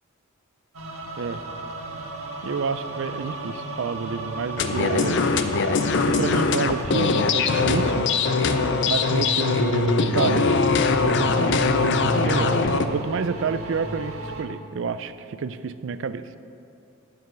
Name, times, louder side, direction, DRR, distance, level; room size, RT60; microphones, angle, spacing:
sound 1, 0.7-14.4, right 3 dB, 80° right, 1.3 m, -33 dB
voice 1, 2.4-5.2 5.8-8.1 8.9-10.5 11.0-12.6 12.9-16.2, right 5 dB, 60° right, 13 dB, 0.4 m, -29 dB
sound 2, 4.6-12.9, left 4 dB, 55° left, 0.5 m, -22 dB
9.3 x 6.8 x 6.0 m, 2.7 s
head